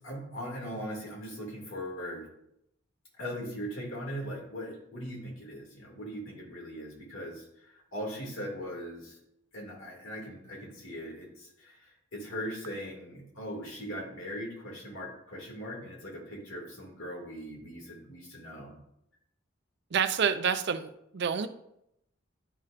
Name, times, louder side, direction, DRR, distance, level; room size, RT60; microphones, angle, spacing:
voice 1, 0.0-2.3 3.2-9.2 9.5-18.8, equal, 85° left, -2 dB, 2.3 m, -40 dB
voice 2, 19.9-21.5, right 7 dB, 60° right, 10 dB, 0.5 m, -28 dB
11.0 x 4.3 x 2.5 m, 0.78 s
head